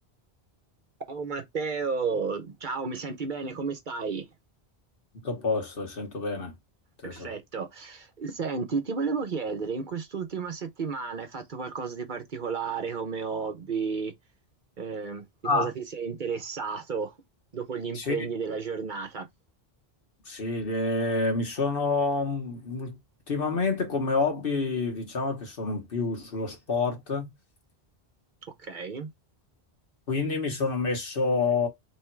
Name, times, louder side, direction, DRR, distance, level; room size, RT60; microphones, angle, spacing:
voice 1, 1.1-4.3 7.0-14.1 14.8-15.2 15.5-17.1 17.5-19.3 28.6-29.1, right 5 dB, 50° right, 0.9 m, -32 dB
voice 2, 5.2-6.6 7.0-7.3 15.4-15.7 17.9-18.2 20.3-23.0 23.3-27.3 30.1-31.7, left 3 dB, 60° left, 1.4 m, -28 dB
3.5 x 3.1 x 4.4 m
omnidirectional pair, 1.1 m